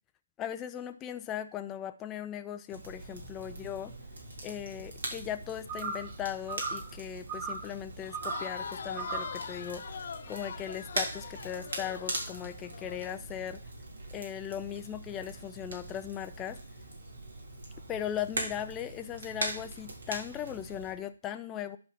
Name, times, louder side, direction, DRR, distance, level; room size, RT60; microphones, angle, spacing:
voice 1, 0.4-4.0 4.4-13.6 14.1-16.6 17.9-21.8, left 10 dB, 15° left, 8 dB, 0.4 m, -38 dB
Crackle, 2.7-20.9, right 2 dB, 70° right, 3.4 m, -41 dB
sound 1, 5.7-6.1 6.5-6.9 7.3-7.7 8.1-8.5 9.0-9.4, right 4 dB, 35° right, 1.4 m, -37 dB
Crowd, 8.0-13.0, left 6 dB, 55° left, 1.0 m, -42 dB
10.5 x 4.4 x 5.5 m, 0.38 s
hypercardioid pair, 160°, 0 cm